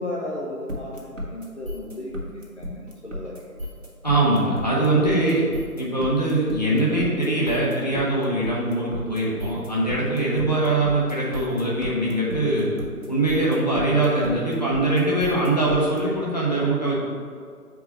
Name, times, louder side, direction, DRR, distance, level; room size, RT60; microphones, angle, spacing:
voice 1, 0.0-3.4 4.4-5.2, left 2 dB, 50° left, -4 dB, 0.9 m, -34 dB
sound 1, 0.7-16.0, left 1 dB, 55° right, 1.5 m, -35 dB
voice 2, 4.0-5.4 5.8-12.7 13.1-17.0, right 2 dB, 25° left, -6 dB, 1.1 m, -22 dB
6.6 x 4.7 x 4.2 m, 2.1 s
figure-of-eight pair, 165°, 46 cm